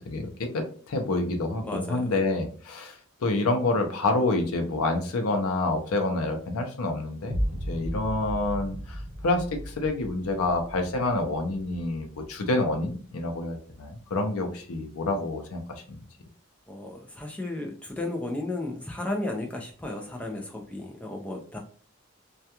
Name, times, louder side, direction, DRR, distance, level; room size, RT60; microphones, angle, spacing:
voice 1, 0.1-7.4 7.7-9.0 9.2-16.0, left 2 dB, 85° left, 4 dB, 0.5 m, -28 dB
voice 2, 1.6-2.1 16.7-21.6, left 2 dB, 5° left, 1 dB, 0.3 m, -34 dB
sound 1, 7.3-13.3, equal, 25° right, 0.8 m, -36 dB
2.3 x 2.2 x 2.8 m, 0.43 s
head